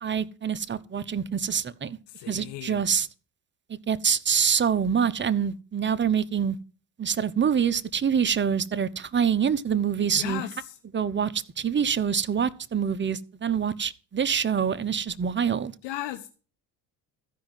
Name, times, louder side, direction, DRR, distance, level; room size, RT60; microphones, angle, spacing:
voice 1, 0.0-2.0 2.3-3.1 3.9-6.6 7.0-10.4 10.9-15.7, right 7 dB, 25° right, 0.9 m, -25 dB
voice 2, 2.1-2.9 10.1-10.8 15.8-16.3, left 14 dB, 75° left, 1.1 m, -36 dB
14.0 x 5.1 x 8.9 m
supercardioid pair, 80°, 42 cm